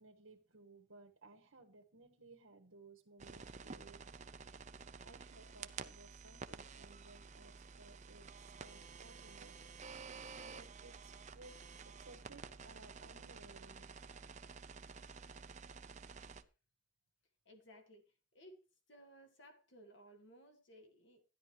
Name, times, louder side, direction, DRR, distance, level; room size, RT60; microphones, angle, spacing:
voice 1, 0.0-4.0 5.0-9.5 10.3-11.6 11.8-13.9, right 3 dB, 90° right, 1.5 m, -60 dB
sound 1, 3.2-16.4, right 5 dB, 35° right, 0.6 m, -51 dB
voice 2, 17.5-18.6 18.9-21.2, equal, 60° left, 2.1 m, -60 dB
13.0 x 10.5 x 3.0 m
head